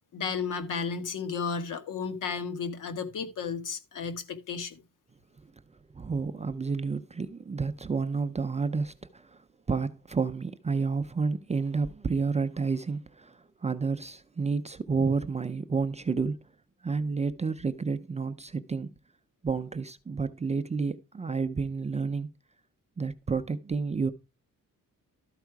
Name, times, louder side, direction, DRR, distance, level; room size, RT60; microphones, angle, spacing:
voice 1, 0.1-4.8, left 5 dB, 65° left, 1.5 m, -33 dB
voice 2, 5.9-16.4 16.8-18.9 19.4-22.3 23.0-24.1, right 4 dB, 20° right, 0.5 m, -30 dB
13.0 x 4.8 x 4.6 m
wide cardioid pair, 170°, 33 cm